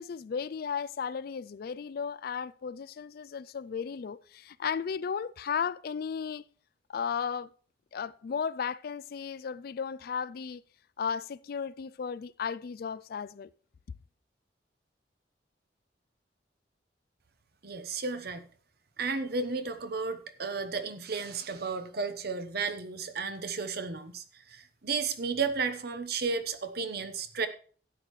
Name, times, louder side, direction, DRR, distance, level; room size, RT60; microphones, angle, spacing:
voice 1, 0.0-6.4 6.9-7.5 7.9-10.6 11.0-13.5, left 6 dB, 55° left, 0.4 m, -35 dB
voice 2, 17.6-18.5 19.0-27.5, right 4 dB, 60° right, 1.0 m, -33 dB
12.5 x 9.2 x 3.1 m
head